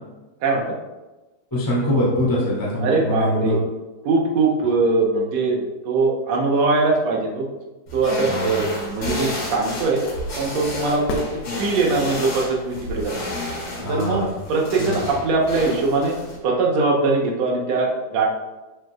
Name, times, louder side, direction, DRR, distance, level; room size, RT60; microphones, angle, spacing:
voice 1, 0.4-0.7 2.8-3.6 4.0-7.5 7.9-10.0 10.3-11.2 11.5-13.3 13.9-16.2 16.4-18.3, right 3 dB, 70° right, -1 dB, 1.6 m, -21 dB
voice 2, 1.5-3.6 8.2-8.6 13.8-14.3 14.9-15.0, left 1 dB, 5° left, -7 dB, 1.6 m, -23 dB
sound 1, 7.9-16.4, left 1 dB, 35° left, 3.2 m, -31 dB
sound 2, 11.1-12.2 16.1-16.2, left 3 dB, 85° left, 3.0 m, -32 dB
12.0 x 6.5 x 2.4 m, 1.1 s
omnidirectional pair, 4.6 m